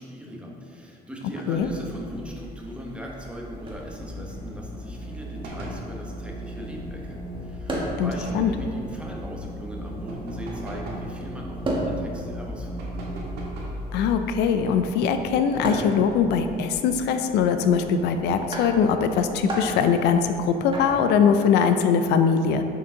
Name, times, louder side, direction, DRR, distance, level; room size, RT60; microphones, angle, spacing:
voice 1, 0.0-13.2, equal, 5° right, -2 dB, 0.9 m, -39 dB
sound 1, 1.5-21.3, right 1 dB, 30° right, 1.3 m, -37 dB
sound 2, 4.0-13.4, equal, 40° left, 0.8 m, -38 dB
sound 3, 5.4-5.9 7.8-8.5 10.1-11.1 12.8-13.8 15.5-16.2, right 1 dB, 80° right, 1.5 m, -39 dB
voice 2, 8.0-8.5 13.9-22.6, left 6 dB, 80° left, 8 dB, 0.4 m, -21 dB
6.5 x 4.4 x 3.7 m, 2.5 s
cardioid pair, 110°, 17 cm